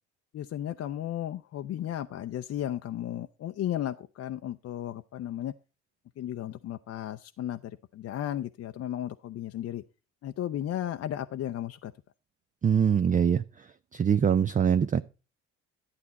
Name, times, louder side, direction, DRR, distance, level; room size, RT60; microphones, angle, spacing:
voice 1, 0.3-5.5 6.2-9.8 10.2-11.9, left 11 dB, 45° left, 0.6 m, -34 dB
voice 2, 12.6-13.7 13.9-15.0, right 7 dB, 25° right, 0.5 m, -23 dB
11.5 x 8.5 x 4.1 m
hypercardioid pair, 60°, 35 cm